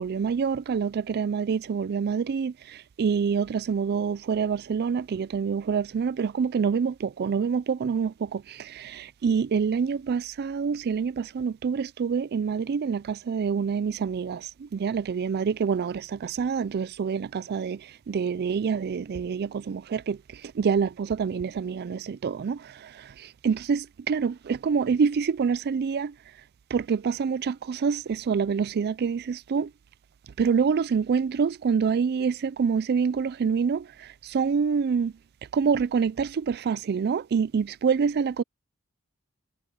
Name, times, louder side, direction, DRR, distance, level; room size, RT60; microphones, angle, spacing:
voice 1, 0.0-17.8 18.1-20.2 20.6-26.1 26.7-29.7 30.4-35.1 35.5-38.4, right 6 dB, 50° right, 0.4 m, -26 dB
head